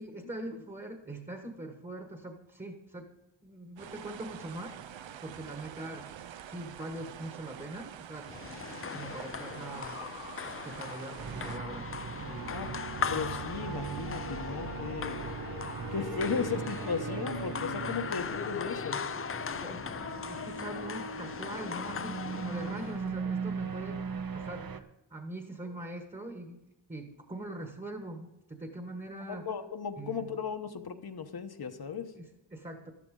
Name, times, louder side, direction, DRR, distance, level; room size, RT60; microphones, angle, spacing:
voice 1, 0.0-3.1 3.4-4.8 5.2-8.3 8.9-10.0 10.6-12.8 16.4-16.5 18.0-18.1 19.6-19.9 20.3-24.0 24.3-26.6 26.9-29.5 30.0-30.3 32.1-32.9, right 1 dB, 15° right, 4 dB, 1.4 m, -42 dB
sound 1, 3.8-11.6, right 10 dB, 80° right, 0.6 m, -46 dB
sound 2, 8.2-23.1, left 7 dB, 30° left, 0.4 m, -39 dB
sound 3, 11.2-24.8, right 6 dB, 50° right, 0.8 m, -39 dB
voice 2, 13.1-15.2 15.9-19.0 29.3-32.1, left 6 dB, 55° left, 7 dB, 1.0 m, -36 dB
13.0 x 12.0 x 3.8 m, 0.95 s
wide cardioid pair, 105°, 45 cm